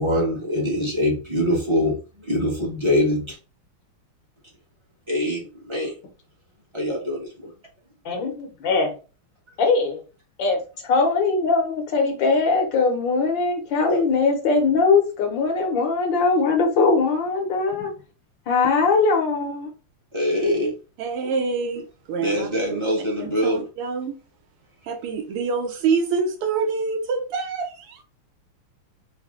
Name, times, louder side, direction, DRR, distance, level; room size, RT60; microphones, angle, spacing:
voice 1, 0.0-3.4 5.1-5.9 6.7-7.5 13.9-14.1 20.1-20.8 22.2-23.7, left 1 dB, 20° right, 0.7 m, -24 dB
voice 2, 8.0-9.0 9.6-10.0 10.4-17.9 18.5-19.7, left 4 dB, 65° left, 1.4 m, -21 dB
voice 3, 21.0-22.8 23.2-24.1 24.8-28.0, right 5 dB, 85° right, 1.8 m, -26 dB
4.7 x 2.1 x 3.6 m
omnidirectional pair, 2.4 m